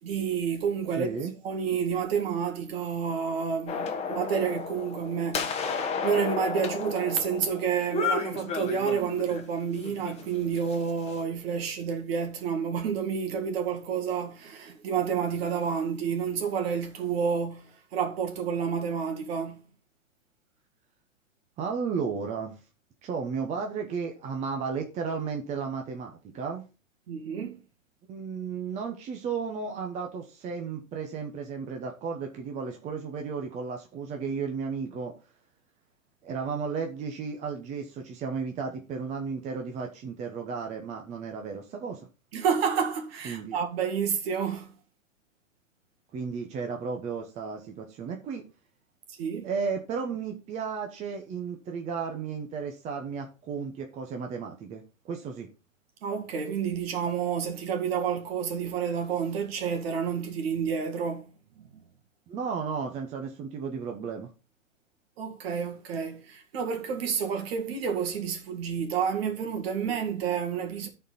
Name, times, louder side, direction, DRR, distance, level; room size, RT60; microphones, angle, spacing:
voice 1, 0.0-1.2 1.4-19.6 27.1-27.5 42.3-44.7 49.1-49.5 56.0-61.3 61.6-61.8 65.2-70.9, right 7 dB, 50° right, 2.1 m, -29 dB
voice 2, 1.0-1.3 21.6-22.6 23.0-26.6 28.1-35.1 36.2-42.0 43.2-43.6 46.1-48.4 49.4-55.5 62.3-64.3, right 5 dB, 15° right, 0.9 m, -34 dB
sound 1, 3.7-9.4 9.8-11.2, left 5 dB, 15° left, 1.2 m, -33 dB
13.5 x 4.5 x 4.0 m
hypercardioid pair, 125°, 40 cm